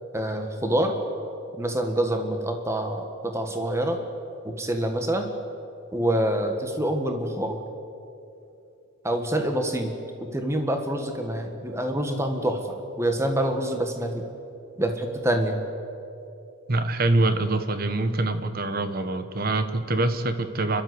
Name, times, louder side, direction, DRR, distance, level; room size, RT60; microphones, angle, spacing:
voice 1, 0.1-1.0 1.6-4.0 4.4-5.3 5.9-7.6 9.0-9.9 10.2-14.2 14.8-15.6, right 1 dB, 15° right, 5 dB, 1.6 m, -26 dB
voice 2, 16.7-20.8, right 2 dB, 45° right, 10 dB, 1.2 m, -24 dB
29.5 x 12.0 x 8.0 m, 2.7 s
head